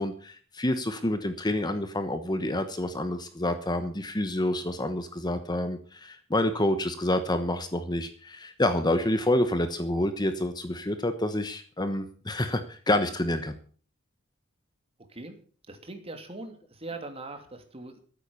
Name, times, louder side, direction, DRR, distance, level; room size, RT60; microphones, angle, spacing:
voice 1, 0.0-13.6, left 1 dB, 20° left, 9 dB, 1.1 m, -28 dB
voice 2, 15.7-18.0, right 2 dB, 30° right, 6 dB, 2.7 m, -41 dB
13.5 x 9.4 x 7.0 m, 0.44 s
head